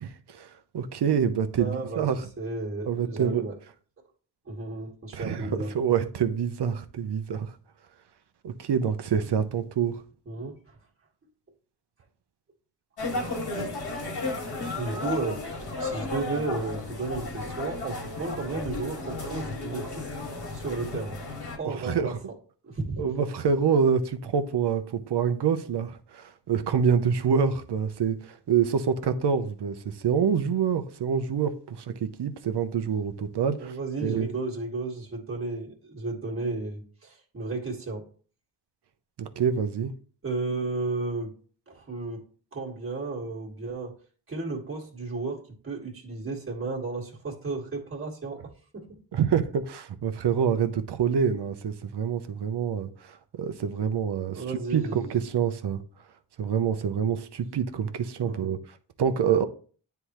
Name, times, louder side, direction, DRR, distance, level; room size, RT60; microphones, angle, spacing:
voice 1, 0.0-2.3 2.9-3.5 5.1-7.5 8.4-10.0 21.6-22.2 23.0-34.3 39.2-39.9 49.1-55.8 56.4-59.4, right 7 dB, 65° right, 0.8 m, -26 dB
voice 2, 1.6-2.1 2.4-3.5 4.5-5.7 10.3-10.6 14.7-20.0 20.5-21.2 21.6-22.1 22.6-23.0 33.5-38.1 40.2-41.3 41.7-42.2 42.5-43.9 44.3-49.0 54.3-55.1 58.2-58.5, right 3 dB, 30° right, 1.7 m, -33 dB
sound 1, 13.0-21.6, left 2 dB, 60° left, 1.9 m, -34 dB
9.8 x 3.5 x 3.0 m
wide cardioid pair, 105°, 44 cm